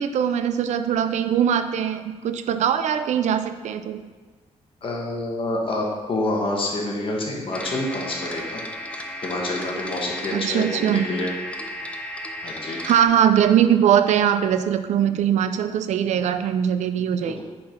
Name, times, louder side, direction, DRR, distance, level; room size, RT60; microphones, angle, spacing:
voice 1, 0.0-4.0 10.3-11.1 12.8-17.4, right 9 dB, 75° right, 10 dB, 0.4 m, -21 dB
voice 2, 4.8-8.6 8.9-11.3 12.4-12.8 17.2-17.4, left 2 dB, 45° left, -1 dB, 1.2 m, -27 dB
sound 1, 7.5-13.1, left 1 dB, 10° left, 0.5 m, -34 dB
5.6 x 4.5 x 5.0 m, 1.3 s
cardioid pair, 125°, 12 cm